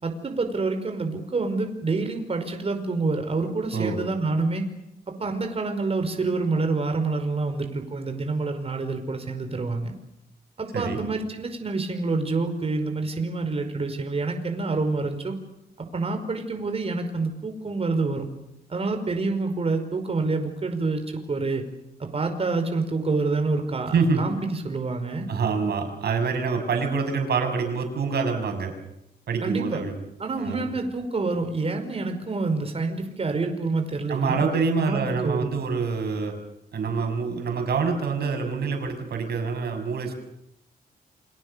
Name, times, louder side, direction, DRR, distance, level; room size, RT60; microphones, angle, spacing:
voice 1, 0.0-4.6 5.1-9.9 10.6-15.4 15.8-18.2 18.7-21.6 22.0-25.3 29.4-29.8 30.2-34.4 34.9-35.5, right 3 dB, 35° right, 5 dB, 5.2 m, -27 dB
voice 2, 23.9-24.2 25.3-28.7 29.3-30.0 30.4-30.7 34.1-36.3 36.7-40.1, right 5 dB, 75° right, 5 dB, 7.0 m, -26 dB
29.5 x 26.0 x 7.0 m, 0.83 s
wide cardioid pair, 120°, 17 cm